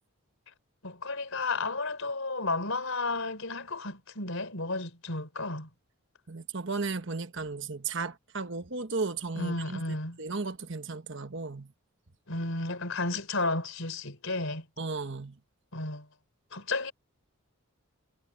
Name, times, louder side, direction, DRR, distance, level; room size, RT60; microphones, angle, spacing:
voice 1, 0.8-5.7 9.4-10.2 12.3-14.7 15.7-16.1 16.5-16.9, left 3 dB, 65° left, 4.1 m, -32 dB
voice 2, 6.3-11.7 14.8-15.4, right 4 dB, 55° right, 1.2 m, -35 dB
head